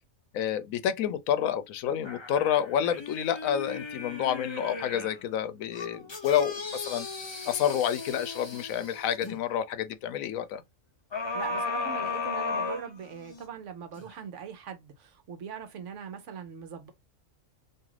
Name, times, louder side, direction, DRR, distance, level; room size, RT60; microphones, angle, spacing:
voice 1, 0.3-7.1 7.5-10.6, left 9 dB, 85° left, 1.0 m, -29 dB
sound 1, 2.0-5.2 5.7-9.4 11.1-13.4 14.0-14.1, left 3 dB, 40° left, 0.4 m, -36 dB
voice 2, 11.3-16.9, right 7 dB, 65° right, 1.0 m, -41 dB
2.7 x 2.4 x 3.1 m
omnidirectional pair, 1.4 m